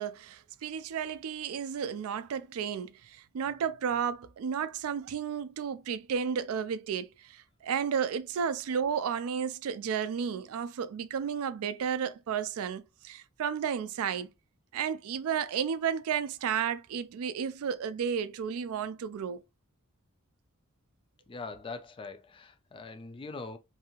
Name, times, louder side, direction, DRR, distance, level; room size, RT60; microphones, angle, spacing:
voice 1, 0.0-14.3 14.7-19.4, right 7 dB, 70° right, 0.3 m, -32 dB
voice 2, 21.3-23.6, left 3 dB, 25° left, 0.3 m, -42 dB
2.7 x 2.4 x 2.8 m
head